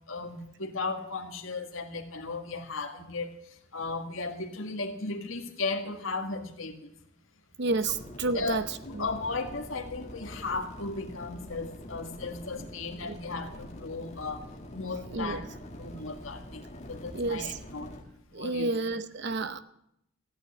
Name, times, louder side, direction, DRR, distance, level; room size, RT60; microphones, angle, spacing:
voice 1, 0.1-3.3 3.7-6.8 8.3-8.6 8.9-14.4 14.7-15.4 15.7-17.9 18.4-18.7, left 3 dB, 70° left, 1.8 m, -35 dB
voice 2, 7.6-8.7 8.9-9.1 13.0-13.2 15.1-15.5 17.1-17.6 18.3-19.6, right 3 dB, 55° right, 0.8 m, -30 dB
sound 1, 7.8-18.0, left 1 dB, 30° left, 1.8 m, -45 dB
14.5 x 8.9 x 8.4 m
head